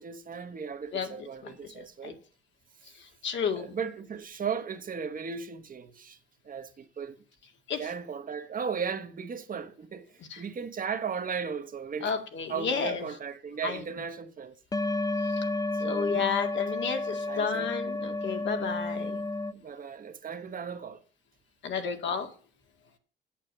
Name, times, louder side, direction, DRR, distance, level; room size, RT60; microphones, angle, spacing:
voice 1, 0.0-2.2 3.5-6.2 6.4-7.2 7.8-10.1 10.4-12.1 12.5-14.6 15.8-16.3 17.3-17.7 19.5-21.0, right 6 dB, 45° right, 1.3 m, -36 dB
voice 2, 1.4-2.1 3.2-3.8 7.7-7.8 10.3-10.4 12.0-13.1 13.6-13.8 15.8-19.2 21.6-22.3, left 6 dB, 70° left, 2.1 m, -32 dB
sound 1, 14.7-19.5, left 2 dB, 20° left, 0.7 m, -31 dB
8.8 x 7.4 x 7.4 m
cardioid pair, 90°, 20 cm